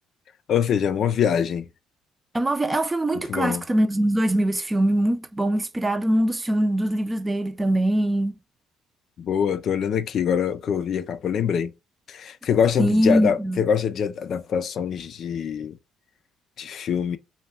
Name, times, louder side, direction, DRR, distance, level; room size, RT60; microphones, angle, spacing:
voice 1, 0.5-1.7 3.1-3.6 9.2-11.7 12.1-15.8 16.6-17.2, left 8 dB, 60° left, 0.4 m, -24 dB
voice 2, 2.3-8.4 12.8-13.7, right 1 dB, 20° right, 0.5 m, -22 dB
2.7 x 2.2 x 3.3 m
supercardioid pair, 70°, 0 cm